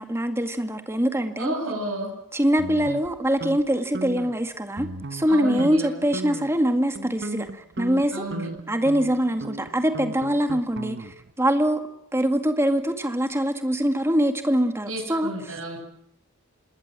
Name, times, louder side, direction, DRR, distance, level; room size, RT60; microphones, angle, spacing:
voice 1, 0.0-1.6 2.3-8.3 8.7-11.8 12.1-15.3, equal, 10° right, 7 dB, 2.0 m, -23 dB
voice 2, 1.4-2.1 5.3-6.0 8.1-8.5 14.8-15.8, right 1 dB, 65° right, -2 dB, 6.4 m, -31 dB
sound 1, 2.6-3.6 3.9-4.4 4.8-5.3 5.6-5.8 6.1-6.6 7.0-11.3, right 2 dB, 50° right, 1.1 m, -36 dB
27.0 x 20.5 x 7.6 m, 0.76 s
head